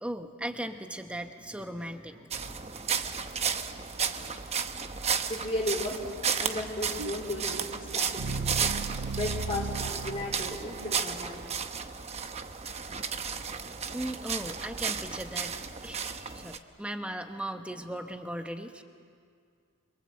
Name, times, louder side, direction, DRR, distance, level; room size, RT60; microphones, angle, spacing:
voice 1, 0.0-2.8 13.9-15.6 15.8-18.8, right 1 dB, 5° right, 6 dB, 1.2 m, -38 dB
sound 1, 2.3-16.6, right 6 dB, 30° right, 0.9 m, -33 dB
voice 2, 5.3-8.8 9.2-11.5, left 1 dB, 25° left, -2 dB, 3.6 m, -35 dB
sound 2, 7.0-11.1, right 4 dB, 90° right, 0.6 m, -36 dB
26.5 x 24.0 x 7.9 m, 2.2 s
head